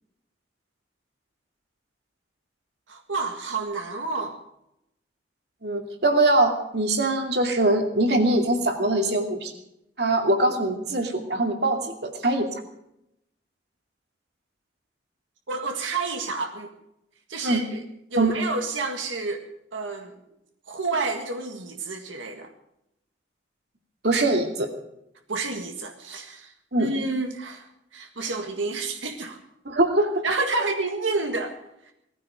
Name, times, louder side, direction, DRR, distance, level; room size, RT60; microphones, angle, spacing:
voice 1, 2.9-4.4 15.5-16.7 17.3-17.8 18.1-20.1 20.7-22.5 25.3-26.5 26.8-29.4 30.2-31.6, right 3 dB, 85° right, 3 dB, 1.8 m, -29 dB
voice 2, 5.6-9.5 10.0-12.5 17.4-17.6 18.2-18.4 24.0-24.7 26.7-26.9 29.6-30.2 30.6-30.7, right 2 dB, 60° right, 4 dB, 2.4 m, -22 dB
19.0 x 15.0 x 5.1 m, 0.81 s
head